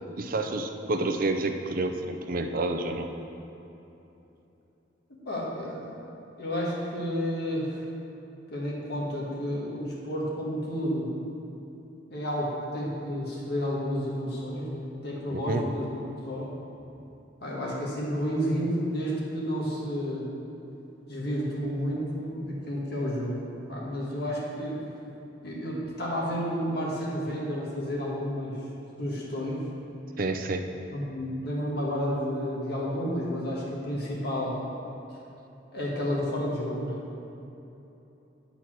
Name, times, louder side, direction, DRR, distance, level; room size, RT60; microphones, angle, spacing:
voice 1, 0.2-3.1 15.3-15.6 30.2-30.6, right 2 dB, 50° right, 5 dB, 0.6 m, -29 dB
voice 2, 5.1-5.9 6.4-7.8 8.5-11.1 12.1-16.5 17.4-20.3 21.1-23.4 23.7-24.8 25.4-28.6 29.0-29.6 30.9-34.6 35.7-37.0, equal, 60° left, -5 dB, 1.7 m, -31 dB
9.8 x 4.4 x 6.1 m, 3.0 s
head